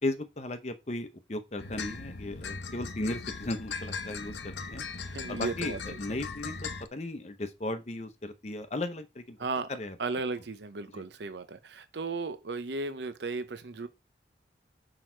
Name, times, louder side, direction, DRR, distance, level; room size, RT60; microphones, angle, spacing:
voice 1, 0.0-4.8 5.3-9.4 9.7-9.9 10.9-11.0, left 2 dB, 35° left, 0.7 m, -36 dB
sound 1, 1.6-6.9, left 4 dB, 80° left, 0.8 m, -39 dB
voice 2, 5.0-5.8 9.4-9.7 10.0-13.9, right 3 dB, 75° right, 0.7 m, -35 dB
6.2 x 4.8 x 4.4 m
head